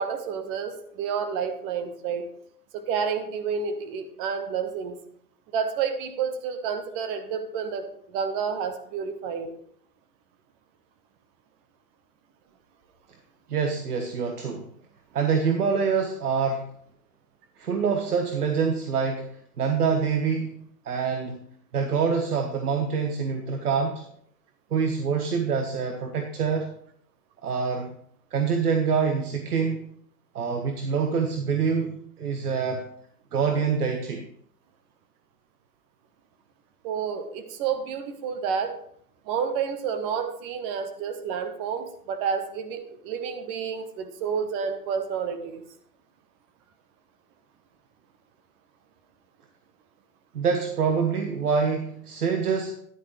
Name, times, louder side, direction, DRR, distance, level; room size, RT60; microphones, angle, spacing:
voice 1, 0.0-2.2 2.7-5.0 5.5-9.5 36.8-38.8 39.3-45.6, right 6 dB, 15° right, 9 dB, 0.4 m, -30 dB
voice 2, 13.5-14.7 15.1-16.7 17.6-20.6 20.8-21.4 21.7-24.1 24.7-26.7 27.4-27.9 28.3-29.9 30.3-32.9 33.3-34.3 50.3-52.8, right 6 dB, 80° right, 5 dB, 1.3 m, -26 dB
11.0 x 9.6 x 3.2 m, 0.64 s
hypercardioid pair, 120°, 45 cm